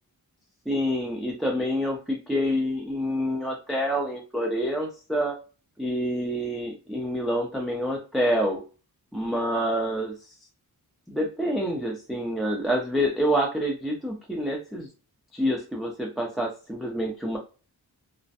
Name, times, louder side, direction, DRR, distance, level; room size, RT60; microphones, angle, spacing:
voice 1, 0.7-5.4 5.8-8.6 9.1-10.1 11.1-14.9 15.3-17.4, equal, ahead, 0 dB, 0.4 m, -27 dB
2.4 x 2.1 x 2.6 m, 0.35 s
wide cardioid pair, 130°, 39 cm